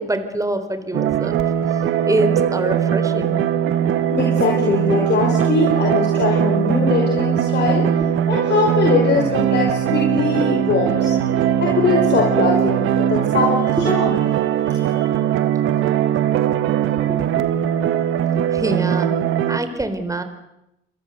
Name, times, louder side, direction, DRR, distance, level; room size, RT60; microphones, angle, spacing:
voice 1, 0.0-1.4 1.7-3.4 17.1-17.4 18.5-19.1 19.5-20.2, right 2 dB, 15° right, 9 dB, 4.2 m, -25 dB
sound 1, 0.9-19.6, right 9 dB, 85° right, 1.7 m, -20 dB
voice 2, 4.1-7.9 8.3-14.1 14.7-15.1, left 4 dB, 60° left, 1 dB, 5.4 m, -21 dB
28.5 x 22.0 x 8.1 m, 0.88 s
cardioid pair, 90°, 20 cm